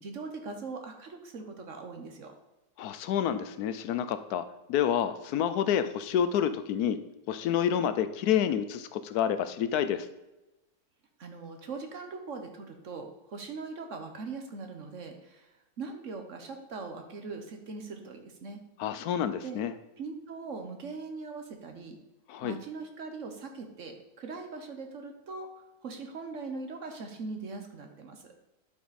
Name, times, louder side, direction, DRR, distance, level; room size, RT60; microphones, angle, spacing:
voice 1, 0.0-2.3 11.2-18.6 19.4-19.6 20.0-22.0 22.4-28.3, right 4 dB, 55° right, 5 dB, 1.3 m, -41 dB
voice 2, 2.8-4.4 4.7-7.0 7.3-10.1 18.8-19.7 22.3-22.6, left 9 dB, 75° left, 11 dB, 1.1 m, -28 dB
11.5 x 5.5 x 4.1 m, 1.0 s
omnidirectional pair, 1.7 m